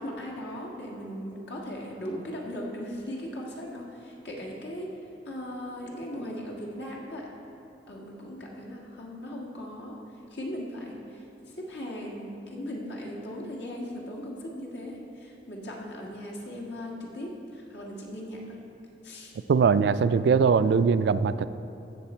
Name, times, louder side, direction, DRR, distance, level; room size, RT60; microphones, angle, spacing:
voice 1, 0.0-7.3 7.9-10.0 10.3-18.6 19.0-19.3, equal, 80° left, -2 dB, 1.8 m, -38 dB
voice 2, 19.5-21.5, right 5 dB, 65° right, 13 dB, 0.3 m, -21 dB
15.5 x 6.5 x 4.4 m, 2.9 s
head